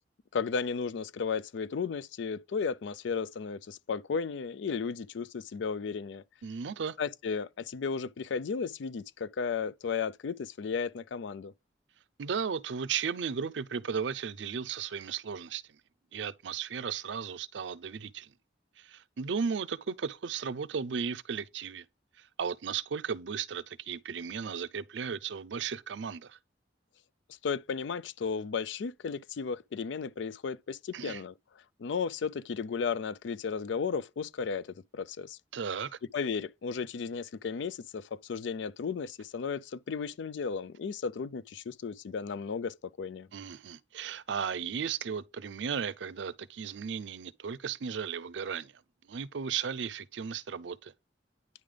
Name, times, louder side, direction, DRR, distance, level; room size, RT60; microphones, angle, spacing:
voice 1, 0.3-6.2 7.0-11.5 27.4-31.3 31.8-34.7 34.9-35.4 36.1-43.3, left 5 dB, 80° left, 0.4 m, -34 dB
voice 2, 6.4-7.0 12.2-15.8 16.1-18.3 18.8-21.9 22.2-26.4 30.9-31.2 35.5-35.9 43.3-48.7 49.0-50.9, right 6 dB, 80° right, 0.5 m, -35 dB
9.4 x 3.3 x 3.7 m
head